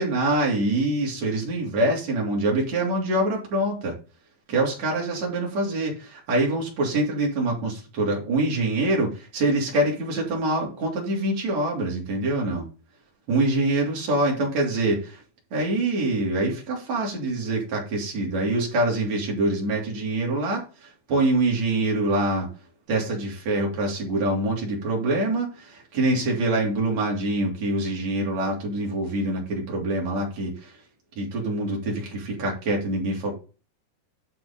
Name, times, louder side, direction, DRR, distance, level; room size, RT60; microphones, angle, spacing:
voice 1, 0.0-4.0 4.5-12.7 13.3-15.2 15.5-22.5 22.9-30.7 31.2-33.3, right 2 dB, 40° right, -2 dB, 3.8 m, -25 dB
10.5 x 5.9 x 3.9 m, 0.34 s
omnidirectional pair, 5.6 m